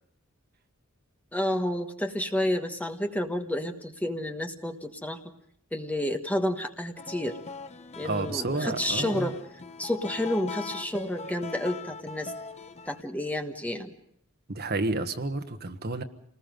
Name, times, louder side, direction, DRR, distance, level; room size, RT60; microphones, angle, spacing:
voice 1, 1.3-5.2 5.7-7.4 8.0-9.4 9.8-12.3 12.9-13.9, left 1 dB, 5° left, 5 dB, 1.4 m, -30 dB
sound 1, 7.0-13.0, left 4 dB, 30° left, 0.9 m, -41 dB
voice 2, 8.0-9.3 14.5-16.0, right 2 dB, 50° right, 7 dB, 1.4 m, -30 dB
28.0 x 20.0 x 5.3 m, 0.68 s
head